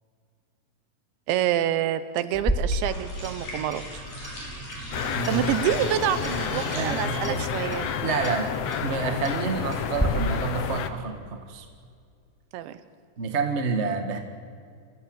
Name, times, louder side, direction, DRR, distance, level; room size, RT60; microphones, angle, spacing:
voice 1, 1.3-4.0 5.3-7.9 12.5-12.8, right 11 dB, 85° right, 12 dB, 3.5 m, -27 dB
Clock, 2.3-10.0, equal, 5° left, 4.3 m, -34 dB
sound 1, 2.7-7.3, equal, 45° left, 9.5 m, -39 dB
sound 2, 4.9-10.9, left 7 dB, 80° left, 1.4 m, -30 dB
voice 2, 5.1-5.5 6.5-7.5 8.0-11.6 13.2-14.2, right 4 dB, 45° right, 4 dB, 0.8 m, -29 dB
27.0 x 27.0 x 8.1 m, 2.3 s
omnidirectional pair, 5.1 m